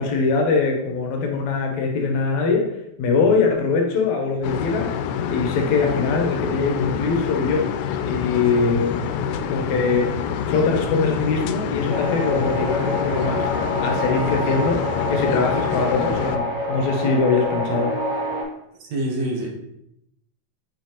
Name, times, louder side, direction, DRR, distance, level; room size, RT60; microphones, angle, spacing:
voice 1, 0.0-2.7 3.0-4.9 5.3-7.7 8.0-10.2 10.5-13.5 13.8-17.9, left 4 dB, 75° left, 2 dB, 2.1 m, -22 dB
sound 1, 4.4-16.4, left 8 dB, 90° left, 2.0 m, -27 dB
sound 2, 11.9-18.4, left 1 dB, 50° right, 2.5 m, -26 dB
voice 2, 18.8-19.5, right 1 dB, 70° right, -1 dB, 2.3 m, -25 dB
5.9 x 5.4 x 3.0 m, 0.79 s
omnidirectional pair, 3.4 m